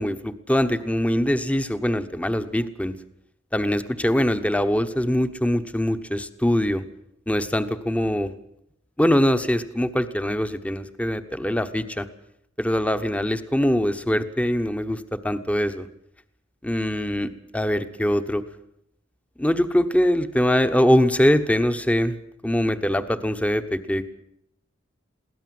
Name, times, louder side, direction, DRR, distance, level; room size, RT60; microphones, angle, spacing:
voice 1, 0.0-2.9 3.5-6.8 7.3-8.3 9.0-12.1 12.6-15.9 16.6-18.4 19.4-22.2 22.4-24.1, equal, 5° left, 10 dB, 1.1 m, -23 dB
22.5 x 17.0 x 7.8 m, 0.76 s
head